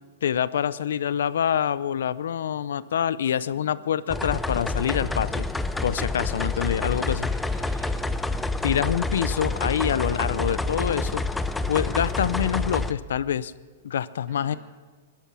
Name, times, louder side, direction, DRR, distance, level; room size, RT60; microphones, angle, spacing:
voice 1, 0.2-5.5 5.8-7.3 8.6-11.2 11.7-13.5 13.8-14.5, left 9 dB, 80° left, 18 dB, 0.5 m, -26 dB
voice 2, 3.3-3.9 6.0-8.7 13.9-14.0 14.3-14.6, right 2 dB, 45° right, 1 dB, 5.3 m, -52 dB
sound 1, 4.1-12.9, left 3 dB, 5° left, 0.6 m, -28 dB
17.5 x 12.0 x 6.2 m, 1.5 s
hypercardioid pair, 135°, 0 cm